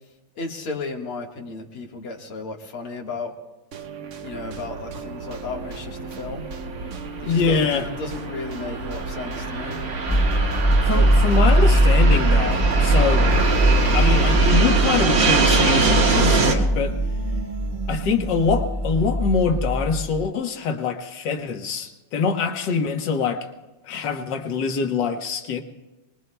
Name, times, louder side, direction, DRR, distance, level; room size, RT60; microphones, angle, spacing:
voice 1, 0.4-3.3 4.2-6.4 7.2-9.8 10.9-11.2, left 3 dB, 90° left, 1 dB, 2.6 m, -34 dB
sound 1, 3.7-18.8, right 7 dB, 85° right, 0.6 m, -37 dB
Fixed-wing aircraft airplane, 4.3-16.5, right 3 dB, 65° right, 2.3 m, -24 dB
voice 2, 7.3-7.9 10.8-13.3 13.8-17.0 17.9-23.5 23.8-25.6, left 5 dB, 60° left, 4 dB, 1.8 m, -24 dB
sound 2, 10.1-20.3, right 1 dB, 10° right, 1.3 m, -20 dB
28.0 x 20.5 x 2.3 m, 1.1 s
omnidirectional pair, 2.3 m